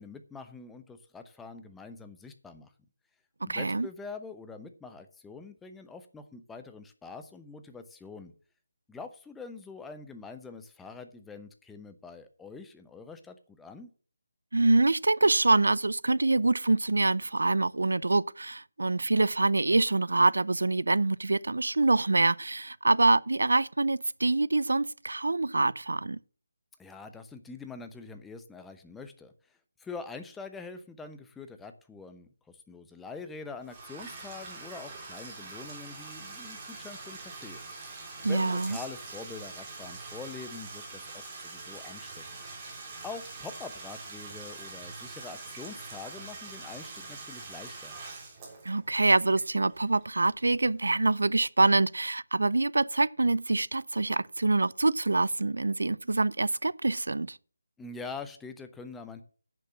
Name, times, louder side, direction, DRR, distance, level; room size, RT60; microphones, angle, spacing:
voice 1, 0.0-2.7 3.4-8.3 8.9-13.9 26.8-37.6 38.2-42.4 43.0-48.0 57.8-59.2, left 4 dB, 5° left, 0.8 m, -44 dB
voice 2, 3.5-3.9 14.5-26.2 38.2-38.8 48.6-57.4, right 2 dB, 80° right, 0.5 m, -25 dB
Bathtub (filling or washing), 33.6-50.3, right 3 dB, 20° right, 3.3 m, -44 dB
10.0 x 6.7 x 7.2 m
figure-of-eight pair, 165°, 0 cm